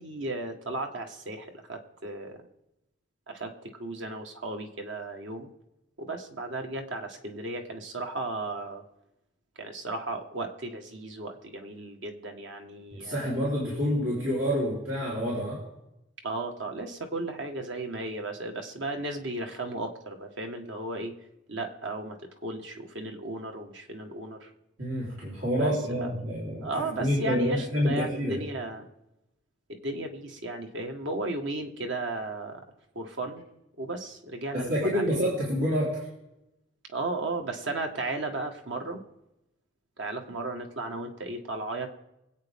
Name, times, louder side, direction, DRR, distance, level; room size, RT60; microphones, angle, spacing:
voice 1, 0.0-2.4 3.3-3.5 3.8-5.5 6.0-8.8 9.6-13.4 16.2-21.1 21.5-22.2 22.4-24.5 25.6-25.7 26.0-26.1 26.6-28.9 29.7-32.6 32.9-33.4 33.8-35.0 36.9-39.0 40.0-41.9, right 2 dB, 65° right, 4 dB, 1.7 m, -35 dB
voice 2, 12.9-15.6 24.8-28.4 34.5-36.0, equal, 90° right, -6 dB, 4.0 m, -28 dB
24.0 x 8.6 x 3.7 m, 0.91 s
head